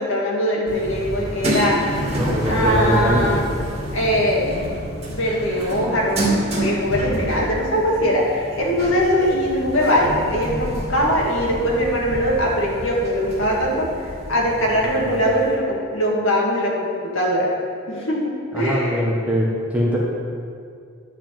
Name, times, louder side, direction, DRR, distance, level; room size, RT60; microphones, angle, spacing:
voice 1, 0.0-2.0 2.5-3.5 3.9-4.5 5.1-6.2 6.5-17.5 17.9-19.0, equal, 65° left, -3 dB, 2.2 m, -21 dB
sound 1, 0.7-15.5, right 1 dB, 30° right, 2.3 m, -28 dB
voice 2, 2.0-3.4 14.9-15.0 18.5-20.0, equal, 5° right, -4 dB, 1.4 m, -22 dB
11.5 x 4.9 x 7.7 m, 2.3 s
head